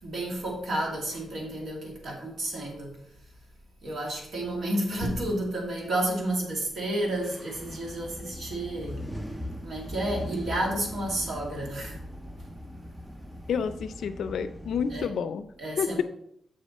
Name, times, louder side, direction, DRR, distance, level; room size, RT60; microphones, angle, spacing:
voice 1, 0.0-3.0 3.8-9.0 9.6-12.0 14.9-15.1 15.6-16.0, right 1 dB, 60° right, -1 dB, 2.3 m, -31 dB
sound 1, 7.1-15.1, equal, 5° right, 0.5 m, -40 dB
voice 2, 13.5-15.5 15.8-16.0, left 7 dB, 70° left, 12 dB, 0.5 m, -29 dB
6.9 x 6.6 x 4.2 m, 0.72 s
wide cardioid pair, 175°, 0 cm